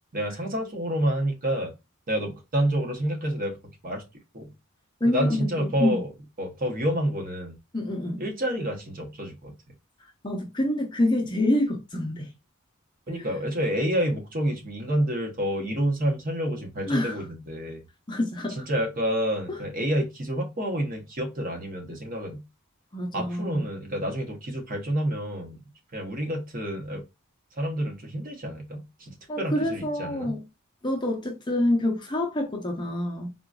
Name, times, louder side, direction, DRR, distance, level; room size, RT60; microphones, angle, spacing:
voice 1, 0.1-1.7 2.1-3.6 3.8-4.0 4.3-4.5 5.0-6.1 6.4-7.6 8.2-9.5 13.1-17.8 18.6-22.4 23.1-25.6 25.9-27.0 27.6-29.1 29.4-30.4, equal, 40° right, 0.9 m, -28 dB
voice 2, 5.0-6.0 7.7-8.2 10.2-12.3 13.1-13.3 16.9-17.3 18.1-18.7 19.5-19.6 22.9-23.6 29.3-30.4 30.8-33.3, left 1 dB, 20° left, 0.6 m, -27 dB
3.8 x 2.5 x 2.3 m
head